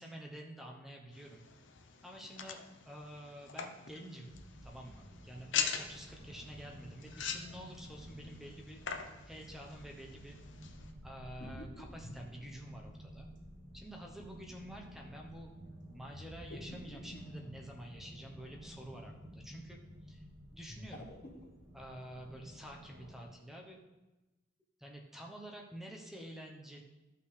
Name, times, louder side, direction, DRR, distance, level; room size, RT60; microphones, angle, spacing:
voice 1, 0.0-1.4 2.0-4.3 4.6-10.4 11.0-13.3 13.7-15.5 15.9-19.8 20.1-20.2 20.5-21.1 21.7-23.8 24.8-26.8, equal, ahead, 0 dB, 0.8 m, -49 dB
sound 1, 1.1-10.9, left 7 dB, 70° left, 0.7 m, -43 dB
sound 2, 4.2-23.3, equal, 70° right, 2.8 m, -53 dB
sound 3, 11.0-13.5 16.1-18.2 20.5-22.0, left 1 dB, 50° left, 1.2 m, -51 dB
13.5 x 5.7 x 3.3 m, 1.1 s
head